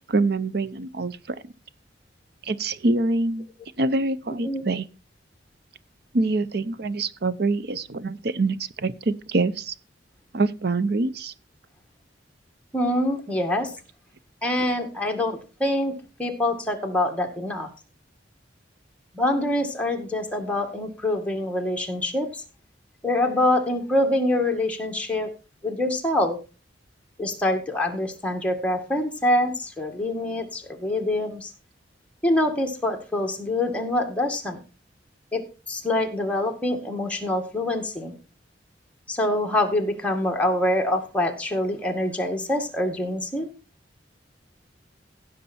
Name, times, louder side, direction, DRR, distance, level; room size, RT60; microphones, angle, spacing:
voice 1, 0.1-1.5 2.4-3.5 3.8-4.9 6.1-9.7 10.3-11.3, right 3 dB, 60° right, 0.7 m, -25 dB
voice 2, 12.7-13.7 14.4-15.9 16.2-17.7 19.1-22.4 23.0-25.3 25.6-26.4 27.2-31.5 32.2-34.6 35.3-35.4 35.7-38.2 39.1-43.5, left 1 dB, 5° left, 1.9 m, -25 dB
15.5 x 6.7 x 4.3 m
head